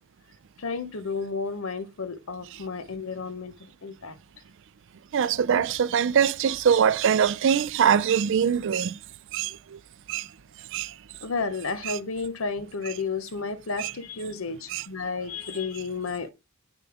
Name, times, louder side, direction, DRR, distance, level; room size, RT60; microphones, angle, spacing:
voice 1, 0.6-3.5 3.8-4.1 11.2-16.3, left 4 dB, 70° left, 0.8 m, -32 dB
voice 2, 5.1-8.9 9.3-9.5 10.1-10.2 10.7-10.9 13.8-13.9 14.7-14.8, right 7 dB, 60° right, 0.4 m, -22 dB
8.2 x 6.9 x 3.4 m
head